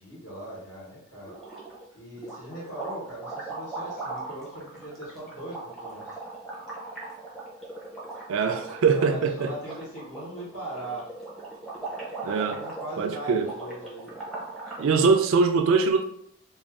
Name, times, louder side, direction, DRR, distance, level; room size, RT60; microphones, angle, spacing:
voice 1, 0.0-1.3 1.9-6.2 8.5-11.1 12.4-14.2, right 1 dB, 60° left, 1.1 m, -40 dB
sound 1, 1.2-1.9 2.2-14.9, right 3 dB, ahead, 0.6 m, -39 dB
voice 2, 8.3-9.5 12.2-12.6 13.0-13.5 14.8-16.0, right 5 dB, 60° right, 0.3 m, -22 dB
2.5 x 2.3 x 3.4 m
head